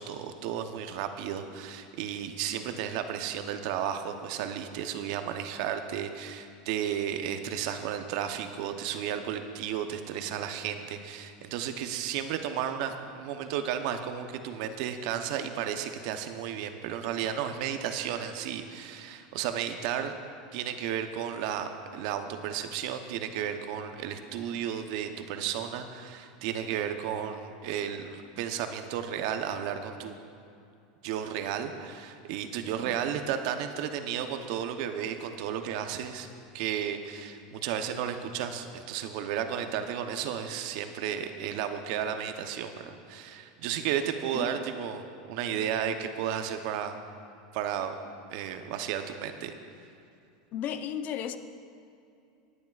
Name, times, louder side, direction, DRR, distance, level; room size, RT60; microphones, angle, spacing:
voice 1, 0.0-20.1 20.5-30.2 31.0-36.3 36.5-47.0 47.5-47.9 48.3-49.5, right 9 dB, 65° right, 7 dB, 0.9 m, -33 dB
voice 2, 50.5-51.4, left 9 dB, 45° left, 9 dB, 0.7 m, -34 dB
19.5 x 10.0 x 2.5 m, 2.6 s
supercardioid pair, 115°, 4 cm